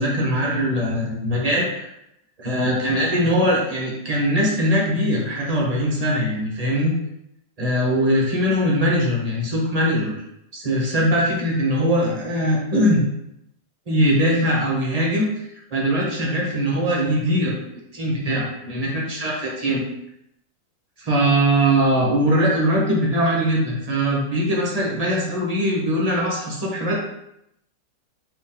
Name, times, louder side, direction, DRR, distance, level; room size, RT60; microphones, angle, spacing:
voice 1, 0.0-1.9 2.4-6.9 7.6-10.1 10.5-13.0 13.9-15.3 15.7-17.5 17.9-19.8 21.0-27.0, equal, 30° right, -3 dB, 0.7 m, -21 dB
4.4 x 3.0 x 3.7 m, 0.78 s
omnidirectional pair, 1.9 m